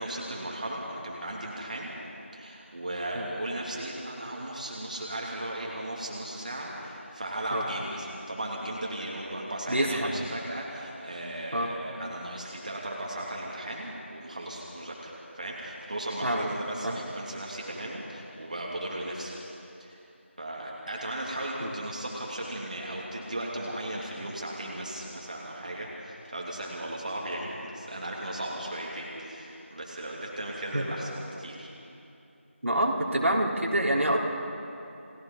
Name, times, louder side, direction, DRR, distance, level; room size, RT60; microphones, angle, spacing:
voice 1, 0.0-1.9 2.3-19.4 19.8-20.0 20.4-31.7, right 1 dB, 35° right, -3 dB, 2.6 m, -36 dB
voice 2, 9.7-10.1 11.5-11.7 16.2-16.5 16.8-17.0 21.6-21.7 30.7-30.8 32.6-34.2, right 1 dB, 80° right, -2 dB, 3.9 m, -26 dB
30.0 x 18.0 x 5.3 m, 2.8 s
figure-of-eight pair, 175°, 7 cm